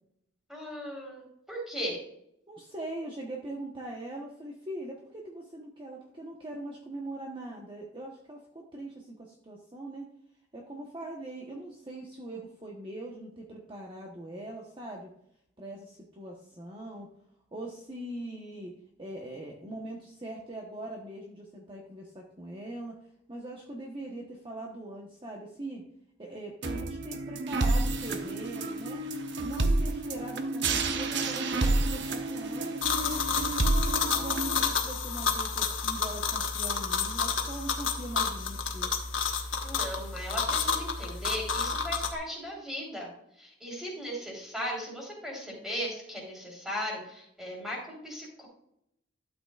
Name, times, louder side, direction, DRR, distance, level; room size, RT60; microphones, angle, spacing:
voice 1, 0.5-2.0 39.6-43.1 43.4-48.5, equal, 5° right, -3 dB, 3.6 m, -37 dB
voice 2, 2.5-10.0 10.5-15.1 15.6-17.1 17.5-18.7 19.0-23.0 23.3-25.8 26.2-29.1 29.4-33.2 34.0-38.9, right 1 dB, 25° right, -1 dB, 1.1 m, -41 dB
sound 1, 26.6-34.6, right 2 dB, 60° right, 0.9 m, -29 dB
sound 2, 32.8-42.1, left 5 dB, 70° left, 1.3 m, -30 dB
12.5 x 8.0 x 2.4 m, 0.76 s
head